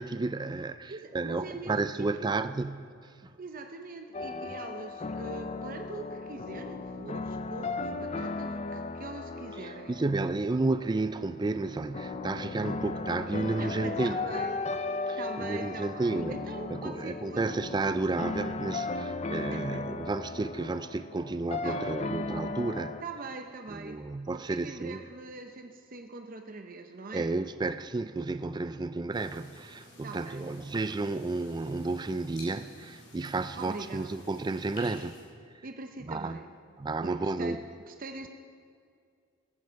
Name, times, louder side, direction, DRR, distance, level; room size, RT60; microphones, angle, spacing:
voice 1, 0.0-2.9 3.2-3.3 4.2-4.6 9.6-14.2 15.1-16.4 16.7-23.0 23.7-25.0 27.1-35.2 36.1-36.4 36.8-37.6, right 3 dB, 20° right, 12 dB, 0.4 m, -32 dB
voice 2, 0.9-2.4 3.4-9.9 13.6-14.7 15.2-17.5 19.5-20.0 21.6-22.3 23.0-24.0 24.3-27.3 30.0-30.4 33.6-34.2 35.6-36.5 37.0-38.3, right 3 dB, 45° right, 5 dB, 0.7 m, -43 dB
sound 1, 4.1-23.0, left 3 dB, 35° left, 0.5 m, -36 dB
sound 2, 29.1-35.2, left 1 dB, 60° left, 4.2 m, -52 dB
15.5 x 15.5 x 4.6 m, 2.3 s
head